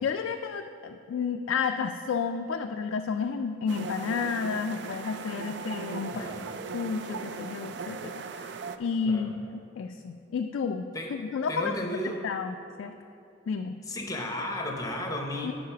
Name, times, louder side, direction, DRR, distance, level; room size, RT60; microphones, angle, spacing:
voice 1, 0.0-6.3 6.7-8.5 8.8-9.4 9.8-11.8 12.0-13.0 13.5-13.8 15.4-15.5, left 5 dB, 70° left, 6 dB, 0.3 m, -31 dB
sound 1, 3.7-8.8, right 5 dB, 55° right, 0.4 m, -38 dB
voice 2, 6.1-6.5 9.0-9.3 10.9-11.1 11.5-12.2 13.9-15.5, left 1 dB, 15° left, 1 dB, 0.8 m, -34 dB
11.0 x 4.1 x 5.8 m, 2.6 s
head